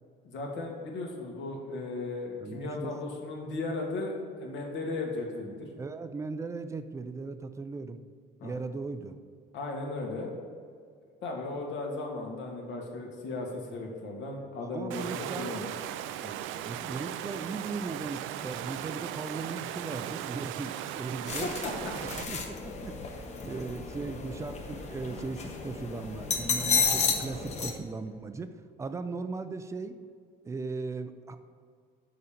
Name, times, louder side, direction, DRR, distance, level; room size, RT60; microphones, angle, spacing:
voice 1, 0.2-5.7 8.4-8.5 9.5-10.3 11.2-15.7 16.2-16.3 21.4-21.9 23.4-23.6, left 2 dB, 75° left, 0 dB, 1.9 m, -36 dB
voice 2, 2.4-2.9 5.8-8.0 8.4-9.2 14.6-15.5 16.6-21.5 22.0-30.0 30.4-31.4, right 4 dB, 15° right, 10 dB, 0.4 m, -38 dB
Water, 14.9-22.2, right 11 dB, 90° right, 0.4 m, -37 dB
sound 1, 21.3-27.7, left 5 dB, 35° left, 1.0 m, -32 dB
6.8 x 5.2 x 7.2 m, 2.2 s
cardioid pair, 160°, 20 cm